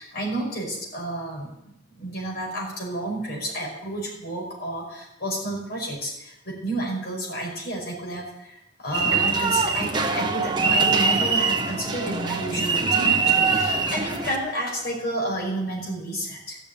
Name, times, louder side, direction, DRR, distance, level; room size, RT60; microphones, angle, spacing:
voice 1, 0.0-1.5 2.0-16.6, right 1 dB, 55° left, -1 dB, 5.5 m, -31 dB
sound 1, 8.9-14.4, right 4 dB, 25° right, 1.2 m, -23 dB
14.0 x 7.1 x 8.6 m, 0.86 s
head